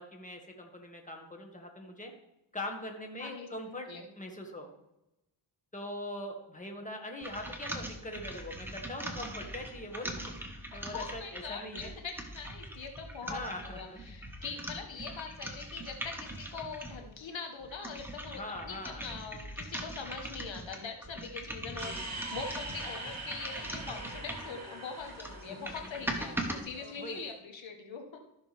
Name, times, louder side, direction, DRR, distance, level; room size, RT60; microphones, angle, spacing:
voice 1, 0.0-2.1 2.5-3.9 4.2-4.7 5.7-11.9 13.2-14.0 18.2-19.0 26.8-27.3, left 1 dB, 15° left, 2 dB, 1.8 m, -42 dB
sound 1, 7.2-17.1 17.6-24.6 25.0-26.6, right 1 dB, 5° right, 1.4 m, -41 dB
voice 2, 10.7-28.2, left 5 dB, 70° left, 4 dB, 1.3 m, -43 dB
sound 2, 21.8-27.2, right 2 dB, 35° right, 2.8 m, -43 dB
14.0 x 6.2 x 3.5 m, 0.92 s
cardioid pair, 75°, 46 cm